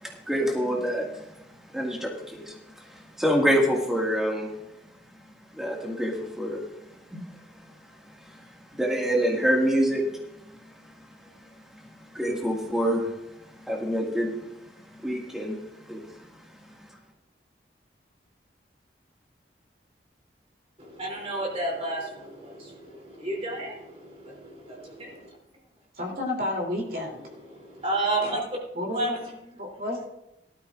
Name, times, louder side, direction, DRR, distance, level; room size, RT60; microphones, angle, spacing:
voice 1, 0.0-1.2 1.7-4.5 5.5-6.6 7.1-7.2 8.2-10.0 12.1-13.1 13.6-14.5 15.0-15.6 15.9-16.0, equal, 5° right, -2 dB, 1.9 m, -26 dB
voice 2, 20.8-25.3 27.5-28.5 28.9-29.1, right 2 dB, 35° right, -1 dB, 3.1 m, -31 dB
voice 3, 25.9-27.3 28.7-30.1, left 1 dB, 50° right, 0 dB, 3.0 m, -31 dB
17.5 x 12.5 x 2.5 m, 0.89 s
head